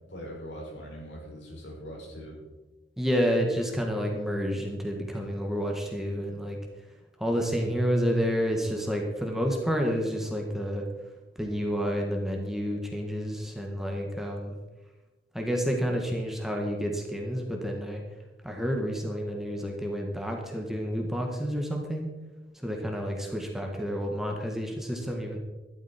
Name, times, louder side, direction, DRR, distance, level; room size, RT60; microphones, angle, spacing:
voice 1, 0.1-2.4, equal, 90° left, -2 dB, 4.8 m, -41 dB
voice 2, 3.0-6.6 7.2-10.9 11.4-14.6 15.3-18.0 18.4-22.1 22.5-25.4, equal, ahead, 1 dB, 1.8 m, -29 dB
12.5 x 12.0 x 4.5 m, 1.1 s
head